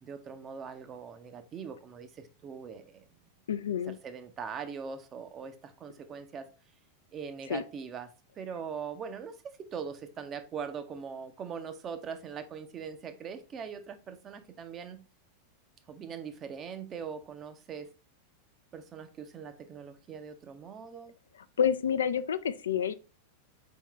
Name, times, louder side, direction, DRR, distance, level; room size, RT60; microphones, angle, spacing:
voice 1, 0.0-3.1 3.9-6.5 7.1-8.1 8.4-15.0 15.9-17.9 18.7-21.1, right 6 dB, 25° right, 0.6 m, -41 dB
voice 2, 3.5-4.0 7.5-7.6 21.6-22.9, left 8 dB, 65° left, 0.3 m, -28 dB
4.5 x 3.5 x 3.3 m
figure-of-eight pair, 90°, 0 cm